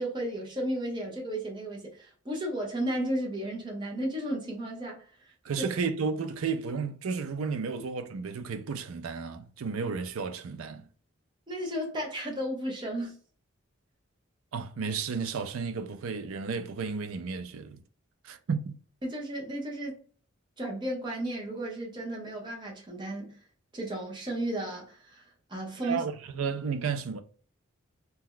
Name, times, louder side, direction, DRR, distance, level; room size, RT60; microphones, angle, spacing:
voice 1, 0.0-5.1 5.6-5.7 11.5-13.1 19.0-20.0 20.6-23.4 23.7-26.0, right 1 dB, 20° right, 0.8 m, -34 dB
voice 2, 5.4-10.8 14.5-17.8 18.2-18.8 25.8-27.2, right 5 dB, 85° right, 0.4 m, -33 dB
2.8 x 2.2 x 3.6 m
head